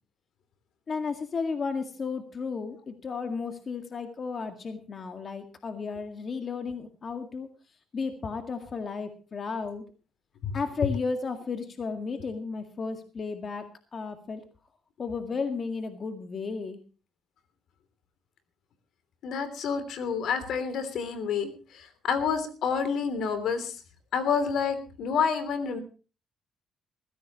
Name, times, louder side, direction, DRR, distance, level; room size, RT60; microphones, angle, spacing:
voice 1, 0.9-7.5 7.9-9.8 10.5-14.4 15.0-16.8, left 4 dB, 45° left, 7 dB, 1.9 m, -33 dB
voice 2, 19.2-23.7 24.1-25.8, left 6 dB, 75° left, 12 dB, 3.1 m, -29 dB
21.0 x 15.5 x 3.1 m, 0.35 s
cardioid pair, 90°, 0 cm